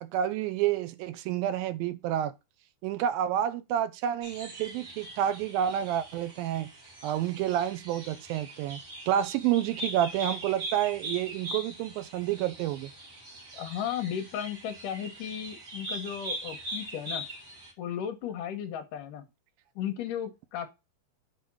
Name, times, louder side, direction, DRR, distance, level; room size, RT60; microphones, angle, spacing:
voice 1, 0.0-2.3 2.8-6.7 7.0-8.8 9.1-12.9, right 11 dB, 80° right, 2.3 m, -29 dB
sound 1, 4.2-17.7, right 1 dB, 45° right, 3.0 m, -41 dB
voice 2, 13.5-17.3 17.8-19.2 19.8-20.7, left 9 dB, 70° left, 2.2 m, -35 dB
6.6 x 4.2 x 6.0 m
omnidirectional pair, 4.4 m